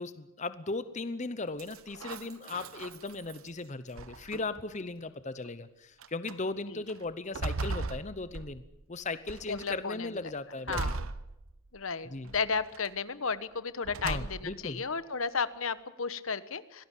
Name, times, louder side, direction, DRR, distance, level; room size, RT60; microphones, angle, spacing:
voice 1, 0.0-8.6 8.9-11.1 12.0-12.3 14.0-14.8, left 3 dB, 35° left, 13 dB, 0.9 m, -37 dB
sound 1, 1.6-3.5 4.0-4.7 5.4-5.5 6.0-6.4 6.9-8.8 9.3-9.8 10.7-11.8 12.3-12.9 13.8-14.7, right 3 dB, 80° right, 1.1 m, -38 dB
voice 2, 9.5-10.1 10.7-11.0 11.7-16.8, left 5 dB, 75° left, 14 dB, 1.2 m, -33 dB
25.0 x 18.0 x 8.3 m, 0.94 s
head